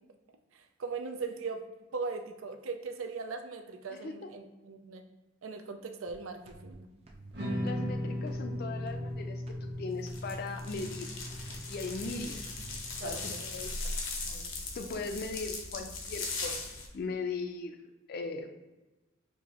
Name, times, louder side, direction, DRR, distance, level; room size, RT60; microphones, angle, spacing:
voice 1, 0.5-1.6 1.9-5.0 5.4-6.9 13.0-13.6 14.2-14.5, right 4 dB, 90° right, 6 dB, 0.5 m, -39 dB
voice 2, 3.9-4.3 7.6-11.1 11.7-12.4 12.9-14.0 14.7-16.6 16.9-17.8 18.1-18.5, left 3 dB, 50° left, 6 dB, 0.4 m, -38 dB
sound 1, 6.1-6.2 6.5-6.7 7.1-7.3 7.7-7.9 8.3-8.5 8.9-9.1 9.5-9.7 10.1-10.3 10.7-10.9 11.3-11.5 11.9-12.1 12.5-12.7 13.1-13.3, right 2 dB, 30° right, 0.5 m, -50 dB
sound 2, 7.3-13.6, left 1 dB, 55° right, 1.2 m, -38 dB
sound 3, 10.1-16.9, left 3 dB, 75° left, 0.8 m, -39 dB
4.6 x 2.6 x 2.9 m, 1.1 s
head